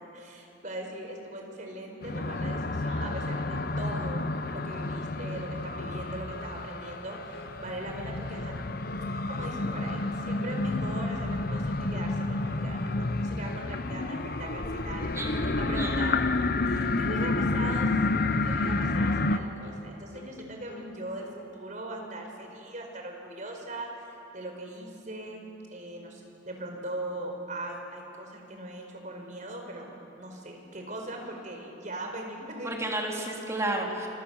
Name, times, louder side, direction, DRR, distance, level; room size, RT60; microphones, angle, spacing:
voice 1, 0.1-4.2 4.5-8.7 9.3-16.2 16.6-24.1 24.3-25.4 25.7-29.9 30.2-32.9, right 1 dB, 40° right, 2 dB, 4.7 m, -40 dB
sound 1, 2.0-19.4, left 2 dB, 45° left, 0.8 m, -30 dB
sound 2, 5.3-5.5 5.8-6.0 6.3-6.5 6.8-7.0 7.3-7.6 7.8-8.1 8.3-8.6 8.8-9.1 9.4-9.6 9.9-10.1 10.4-10.6 10.9-11.1 11.4-11.7 11.9-12.2 12.4-12.7 12.9-13.2 13.5-13.7 14.0-14.2 14.5-14.7 15.0-15.2 15.5-15.7 16.0-16.3 16.5-16.8 17.1-17.3 17.6-17.8 18.1-18.3 18.6-18.8 19.1-19.3 19.6-19.9 20.1-20.4 20.7-20.9 21.2-21.4, left 2 dB, 70° left, 4.0 m, -48 dB
voice 2, 15.1-16.1 32.6-34.1, right 1 dB, 15° right, 0 dB, 3.1 m, -32 dB
27.5 x 25.5 x 7.3 m, 3.0 s
head